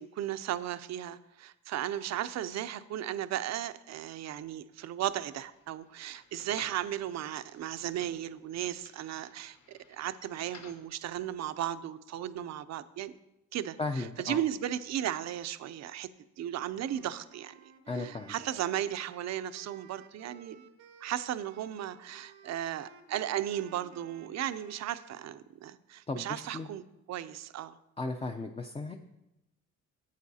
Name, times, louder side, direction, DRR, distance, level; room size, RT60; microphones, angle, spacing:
voice 1, 0.0-13.1 13.5-16.1 16.4-20.6 21.0-26.8 27.1-27.8, right 11 dB, 65° right, 13 dB, 0.5 m, -36 dB
sound 1, 5.0-10.9, left 5 dB, 70° left, 1.2 m, -57 dB
voice 2, 13.8-14.4 17.9-18.3 26.1-26.7 28.0-29.0, left 3 dB, 20° left, 5 dB, 0.5 m, -35 dB
Wind instrument woodwind instrument, 16.7-25.5, right 6 dB, 90° right, 0.9 m, -55 dB
11.5 x 8.1 x 2.8 m, 0.92 s
cardioid pair, 90°, 30 cm